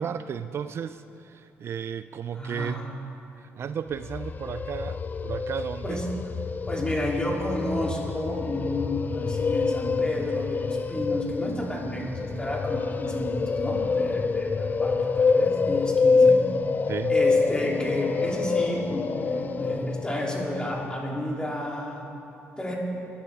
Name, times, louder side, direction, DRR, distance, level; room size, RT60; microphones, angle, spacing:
voice 1, 0.0-2.9 3.4-6.0 16.9-17.2, right 8 dB, 55° right, 12 dB, 0.3 m, -34 dB
voice 2, 2.3-2.9 5.8-6.0 6.7-16.4 17.1-22.1 22.6-22.7, left 1 dB, 15° left, -2 dB, 3.1 m, -31 dB
sound 1, 3.9-20.9, left 4 dB, 35° left, 0.4 m, -26 dB
19.5 x 11.5 x 3.6 m, 2.9 s
supercardioid pair, 70°, 5 cm